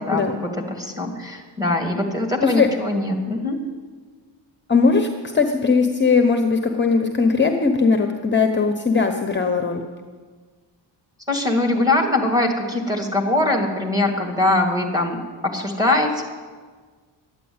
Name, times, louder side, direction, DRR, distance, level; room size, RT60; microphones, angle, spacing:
voice 1, 0.0-3.6 11.3-16.2, left 2 dB, 10° right, 1 dB, 2.3 m, -22 dB
voice 2, 4.7-5.1 5.3-9.8, left 4 dB, 25° left, 5 dB, 0.8 m, -19 dB
12.0 x 9.8 x 8.7 m, 1.5 s
cardioid pair, 125°, 45 cm